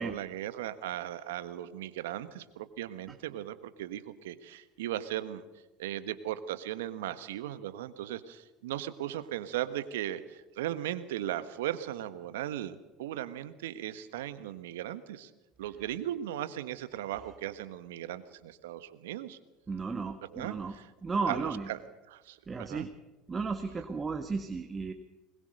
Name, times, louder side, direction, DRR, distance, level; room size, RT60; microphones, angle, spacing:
voice 1, 0.0-5.4 5.8-15.3 15.6-19.4 20.2-20.9 21.3-21.8 22.1-22.9, right 12 dB, 75° right, 13 dB, 1.3 m, -37 dB
voice 2, 19.7-20.7 21.0-21.7 22.5-22.9 23.3-24.9, right 4 dB, 25° right, 7 dB, 1.5 m, -34 dB
21.5 x 21.0 x 6.6 m, 1.1 s
hypercardioid pair, 75°, 0 cm